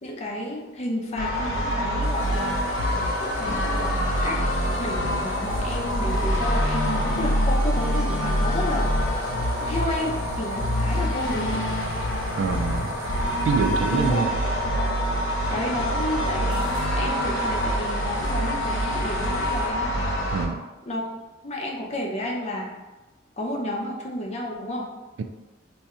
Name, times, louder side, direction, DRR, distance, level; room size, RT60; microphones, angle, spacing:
voice 1, 0.0-2.6 3.2-3.9 4.2-4.4 4.7-9.2 9.7-11.6 13.9-14.3 15.5-16.7 17.0-19.9 20.9-21.1 21.4-22.7 23.4-24.9, left 1 dB, 35° left, -1 dB, 0.5 m, -31 dB
sound 1, 1.2-20.5, equal, 85° left, 0.6 m, -25 dB
sound 2, 2.0-19.7, right 1 dB, 90° right, 0.7 m, -40 dB
voice 2, 12.4-13.0 13.5-14.3 20.3-20.6 25.2-25.3, right 5 dB, 70° right, 6 dB, 0.3 m, -25 dB
2.7 x 2.4 x 4.2 m, 1.1 s
head